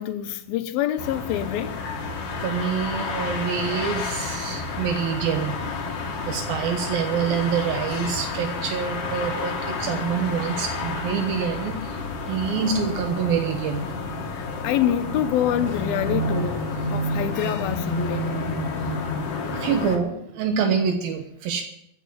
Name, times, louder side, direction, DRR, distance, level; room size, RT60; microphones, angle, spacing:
voice 1, 0.0-1.8 14.3-18.3, left 11 dB, 80° left, 2.8 m, -26 dB
sound 1, 1.0-20.0, left 2 dB, 65° left, 3.6 m, -30 dB
voice 2, 2.4-5.6 6.3-12.0 12.3-13.8 19.5-21.6, right 7 dB, 80° right, 2.9 m, -26 dB
14.5 x 8.7 x 9.6 m
omnidirectional pair, 4.2 m